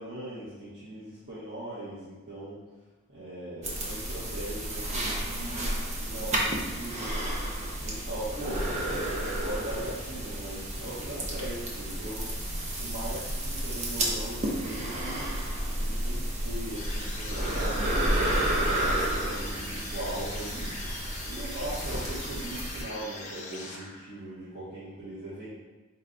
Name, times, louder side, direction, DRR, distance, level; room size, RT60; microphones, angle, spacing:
voice 1, 0.0-2.6 3.1-7.0 7.8-8.7 9.4-15.4 15.8-20.8 21.2-25.5, right 1 dB, 50° right, -13 dB, 1.1 m, -40 dB
sound 1, 3.6-22.8, right 1 dB, 30° right, 0.6 m, -31 dB
sound 2, 16.8-24.3, left 3 dB, 35° left, 0.5 m, -42 dB
4.2 x 2.3 x 3.8 m, 1.2 s
head